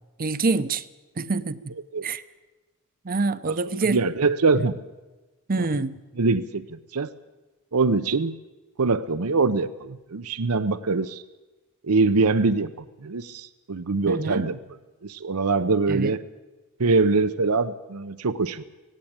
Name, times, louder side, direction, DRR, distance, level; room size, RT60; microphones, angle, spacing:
voice 1, 0.2-0.8 1.2-1.7 2.0-2.2 3.0-4.0 4.6-4.7 5.5-6.0 14.1-14.5 15.9-16.1, right 3 dB, 40° right, 13 dB, 0.7 m, -26 dB
voice 2, 3.9-4.8 6.2-7.1 7.7-8.4 8.8-11.2 11.8-12.7 13.0-14.6 15.0-16.2 16.8-18.6, right 3 dB, 80° right, 13 dB, 0.8 m, -23 dB
18.0 x 17.0 x 8.8 m, 1.1 s
head